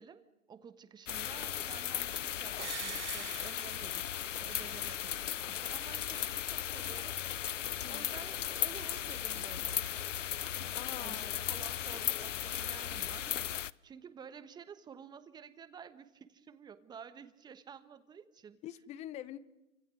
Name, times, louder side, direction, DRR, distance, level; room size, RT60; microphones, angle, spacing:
voice 1, 0.0-7.2 7.9-9.9 10.5-13.4 13.8-18.6, right 7 dB, 10° right, 1.3 m, -52 dB
sound 1, 1.1-13.7, left 10 dB, 70° left, 0.8 m, -36 dB
sound 2, 2.6-4.5 4.8-4.9, right 10 dB, 60° right, 1.6 m, -45 dB
voice 2, 10.7-11.5 18.6-19.4, left 12 dB, 15° left, 0.9 m, -45 dB
28.0 x 26.0 x 6.4 m
hypercardioid pair, 135°, 38 cm